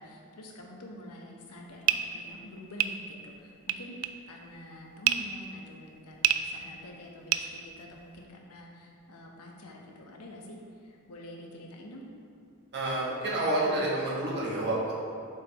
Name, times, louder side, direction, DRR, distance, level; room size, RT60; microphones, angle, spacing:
voice 1, 0.0-4.0 4.3-12.1, left 1 dB, 90° left, 0 dB, 1.0 m, -47 dB
sound 1, 1.5-8.3, right 11 dB, 85° right, 0.3 m, -31 dB
voice 2, 12.7-14.9, right 1 dB, 50° right, -5 dB, 1.5 m, -29 dB
7.5 x 5.6 x 3.0 m, 2.5 s
head